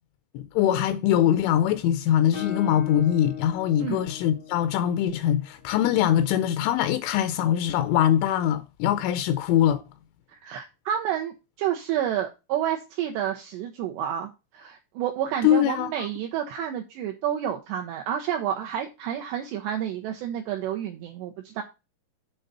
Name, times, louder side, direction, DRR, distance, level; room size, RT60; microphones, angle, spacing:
voice 1, 0.3-9.8 15.4-16.1, left 11 dB, 80° left, 2.9 m, -23 dB
Guitar, 2.3-6.0, left 8 dB, 65° left, 0.5 m, -39 dB
voice 2, 10.3-21.6, right 10 dB, 80° right, 2.5 m, -30 dB
7.9 x 3.8 x 6.6 m
omnidirectional pair, 5.7 m